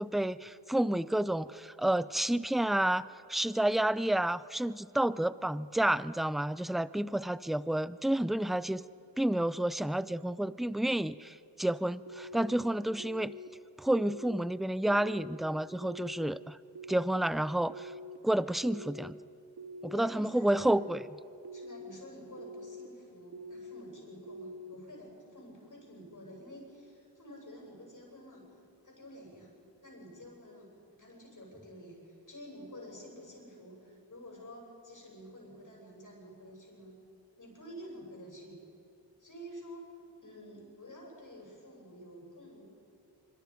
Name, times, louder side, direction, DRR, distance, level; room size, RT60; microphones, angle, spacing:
voice 1, 0.0-8.8 9.2-13.3 13.8-16.6 16.9-17.9 18.2-19.2 19.8-21.0, right 1 dB, ahead, 17 dB, 0.4 m, -30 dB
sound 1, 12.1-12.5 13.0-13.5 13.9-14.4 14.9-15.4 15.8-16.3 16.7-17.2 17.7-18.2 18.6-19.1 19.6-20.1 20.5-21.0 21.4-21.9 22.4-22.9 23.3-23.8 24.3-24.7, equal, 60° right, 2.2 m, -45 dB
voice 2, 19.9-20.8 21.5-28.5 28.8-29.5 29.8-37.0 37.4-38.6 39.2-39.9 40.2-42.7, equal, 45° left, -2 dB, 7.8 m, -50 dB
25.5 x 25.0 x 5.3 m, 2.6 s
cardioid pair, 70°, 44 cm